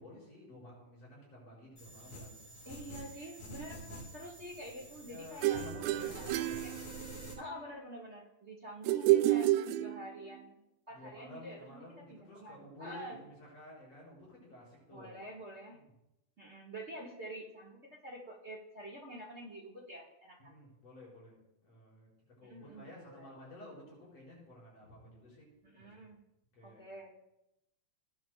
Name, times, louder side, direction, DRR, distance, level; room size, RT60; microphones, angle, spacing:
voice 1, 0.0-2.9 5.0-6.2 6.5-6.7 10.9-15.2 15.7-15.9 20.4-21.4 21.6-22.1 22.4-25.5 25.8-26.1 26.5-26.8, left 1 dB, 45° left, -6 dB, 6.1 m, -53 dB
sound 1, 1.8-7.3, right 1 dB, 70° left, 7.1 m, -48 dB
voice 2, 2.6-5.6 6.1-6.8 7.4-10.6 10.9-13.2 14.9-15.8 16.4-20.5 22.4-23.3 25.6-26.2 26.6-27.2, right 1 dB, 50° right, -3 dB, 0.7 m, -48 dB
sound 2, 5.4-7.4 8.8-10.4, right 15 dB, 85° right, 2.3 m, -30 dB
20.5 x 10.5 x 2.3 m, 0.88 s
omnidirectional pair, 4.1 m